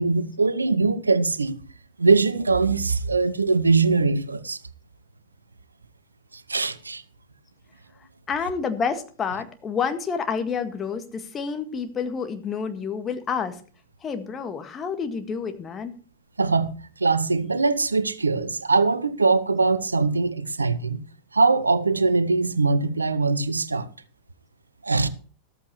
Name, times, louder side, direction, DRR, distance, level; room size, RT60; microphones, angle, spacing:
voice 1, 0.0-1.6 2.0-4.6 6.5-7.0 16.4-16.7 17.0-21.0 21.3-23.9 24.8-25.1, right 4 dB, 80° right, 0.7 m, -22 dB
voice 2, 8.3-13.6 14.0-15.9, left 6 dB, 20° left, 1.7 m, -29 dB
14.0 x 13.5 x 3.1 m
figure-of-eight pair, 90°, 0 cm